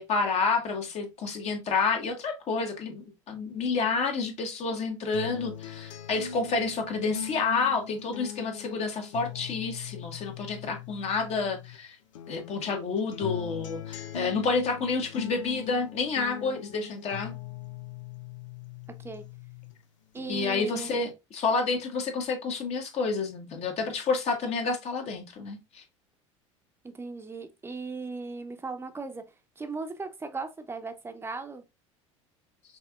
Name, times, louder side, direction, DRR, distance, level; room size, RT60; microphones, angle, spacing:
voice 1, 0.0-12.0 12.3-17.3 20.3-25.8, left 4 dB, 40° left, 1.4 m, -29 dB
sound 1, 5.1-11.8 12.1-19.8 20.2-21.1, left 9 dB, 75° left, 0.5 m, -41 dB
voice 2, 20.1-21.1 26.8-29.2 29.6-31.6, right 3 dB, 15° right, 0.9 m, -37 dB
5.3 x 3.5 x 2.4 m
figure-of-eight pair, 75°, 16 cm